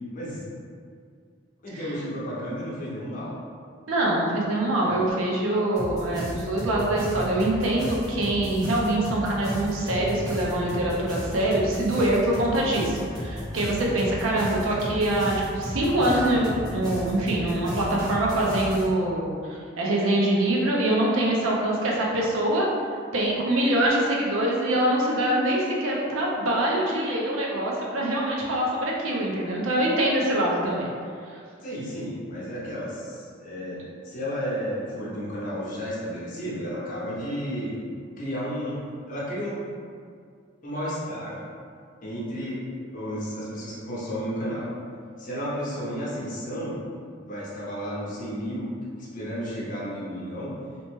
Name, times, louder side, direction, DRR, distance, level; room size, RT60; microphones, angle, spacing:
voice 1, 0.1-0.4 1.6-3.4 4.8-5.0 31.6-37.8 38.2-38.8 39.1-39.7 40.6-41.4 42.0-42.6 42.9-44.7 45.2-46.8 47.3-50.5, equal, 40° left, -7 dB, 0.7 m, -32 dB
voice 2, 3.9-22.7 23.1-30.9, right 1 dB, 85° right, -3 dB, 0.5 m, -24 dB
sound 1, 5.8-18.8, equal, 20° right, 0.9 m, -34 dB
2.9 x 2.1 x 3.0 m, 2.2 s
head